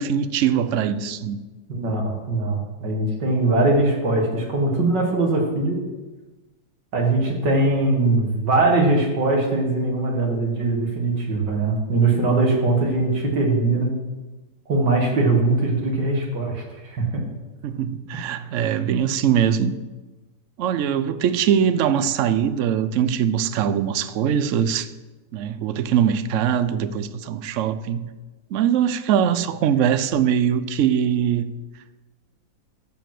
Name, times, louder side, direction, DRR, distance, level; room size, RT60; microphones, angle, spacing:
voice 1, 0.0-1.4 17.6-19.7 20.6-24.9 25.3-28.1 28.5-31.5, right 8 dB, 65° right, 0.8 m, -22 dB
voice 2, 1.7-5.8 6.9-13.9 14.7-17.2, right 2 dB, 85° right, 2.5 m, -21 dB
12.0 x 5.1 x 7.6 m
omnidirectional pair, 1.8 m